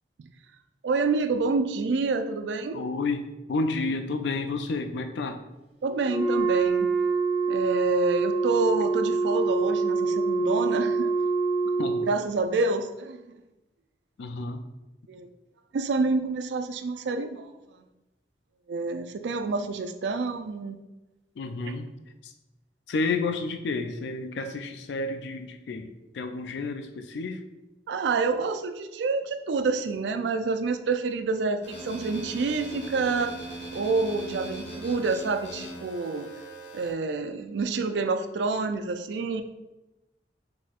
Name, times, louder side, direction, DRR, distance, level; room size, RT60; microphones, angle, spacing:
voice 1, 0.8-2.9 5.8-6.9 7.5-11.1 11.8-13.2 15.1-15.3 15.7-17.5 18.7-20.8 21.7-21.8 27.9-33.3 33.7-36.3 36.7-39.4, right 3 dB, 75° right, 9 dB, 0.4 m, -28 dB
voice 2, 2.7-5.4 11.8-12.1 14.2-14.6 21.4-21.9 22.2-22.3 22.9-27.4, left 3 dB, 70° left, 6 dB, 0.4 m, -31 dB
Wind instrument woodwind instrument, 6.0-12.1, right 4 dB, 35° right, 1.0 m, -25 dB
sound 1, 31.6-36.9, right 1 dB, 90° left, 1.0 m, -39 dB
4.3 x 4.2 x 2.4 m, 1.0 s
head